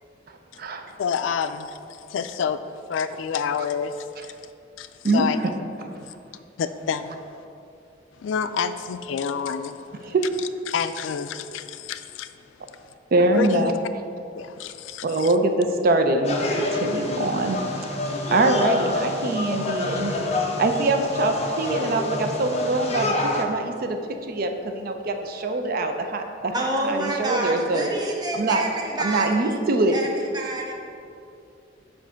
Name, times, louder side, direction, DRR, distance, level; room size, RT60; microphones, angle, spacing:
voice 1, 1.0-2.6 2.9-4.3 4.8-5.5 6.0-6.1 6.6-7.2 8.2-10.1 10.7-12.3 13.3-13.7 14.3-15.3, left 6 dB, 90° left, 11 dB, 0.3 m, -28 dB
voice 2, 13.1-13.7 15.0-17.6 18.3-20.1 20.6-24.0 24.3-27.9 28.3-28.6 29.0-30.0, right 2 dB, 55° right, 6 dB, 0.4 m, -23 dB
sound 1, 16.2-23.4, left 2 dB, 35° left, 0.6 m, -27 dB
voice 3, 26.5-29.6 29.9-30.1 30.3-30.7, right 1 dB, 20° right, -1 dB, 0.7 m, -28 dB
7.2 x 2.6 x 5.6 m, 2.5 s
head